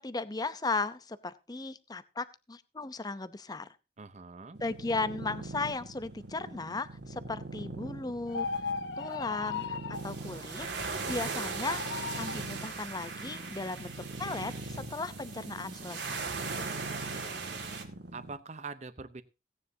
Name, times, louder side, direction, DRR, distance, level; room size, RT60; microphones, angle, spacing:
voice 1, 0.0-3.7 4.6-8.5 9.0-9.8 10.0-11.8 12.1-16.2, left 3 dB, 20° left, 14 dB, 0.7 m, -36 dB
voice 2, 4.0-4.6 16.5-17.6 18.1-19.2, right 4 dB, 40° right, 12 dB, 0.8 m, -45 dB
sound 1, 4.6-18.4, right 2 dB, 75° right, 1.7 m, -44 dB
sound 2, 8.3-10.1 11.4-12.4, left 5 dB, 75° left, 0.8 m, -36 dB
sound 3, 9.9-17.8, right 4 dB, 90° right, 2.1 m, -39 dB
17.0 x 9.8 x 2.8 m, 0.27 s
head